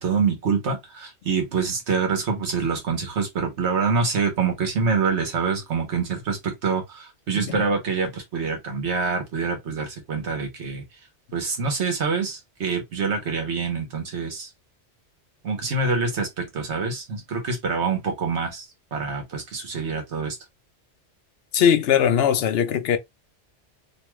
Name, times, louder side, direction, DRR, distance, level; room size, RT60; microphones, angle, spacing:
voice 1, 0.0-10.8 11.3-14.5 15.4-18.7 18.9-20.4, right 5 dB, 70° right, 1.3 m, -26 dB
voice 2, 21.5-23.0, left 8 dB, 65° left, 0.7 m, -20 dB
3.0 x 2.3 x 3.1 m
omnidirectional pair, 1.2 m